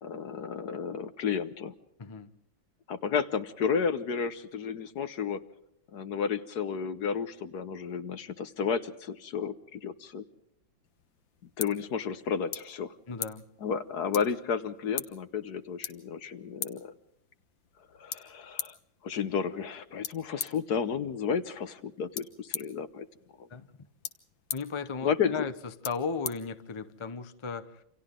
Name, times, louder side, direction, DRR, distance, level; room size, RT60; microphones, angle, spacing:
voice 1, 0.0-1.7 2.9-5.4 5.9-10.2 11.6-13.0 13.6-16.9 18.0-18.8 19.0-23.0 23.4-23.5 25.0-25.4, left 6 dB, 60° left, 12 dB, 1.4 m, -32 dB
voice 2, 2.0-2.3 13.1-13.4 23.5-23.7 24.5-25.5 25.8-27.8, left 5 dB, 30° left, 10 dB, 0.5 m, -35 dB
sound 1, 10.8-27.1, left 8 dB, 75° left, 2.0 m, -43 dB
28.5 x 26.5 x 3.8 m, 0.77 s
omnidirectional pair, 2.1 m